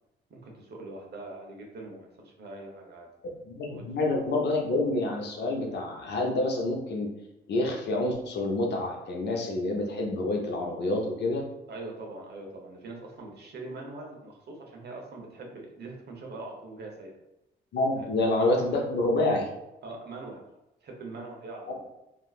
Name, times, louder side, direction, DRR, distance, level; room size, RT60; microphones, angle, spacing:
voice 1, 0.3-3.1 3.7-3.8 11.7-17.1 17.9-18.1 19.8-20.4 20.8-21.9, right 2 dB, 55° right, 0 dB, 0.9 m, -42 dB
voice 2, 3.5-7.1 7.5-11.4 17.7-19.5, left 2 dB, 60° left, 0 dB, 0.8 m, -27 dB
3.6 x 2.5 x 2.4 m, 0.89 s
cardioid pair, 90°, 20 cm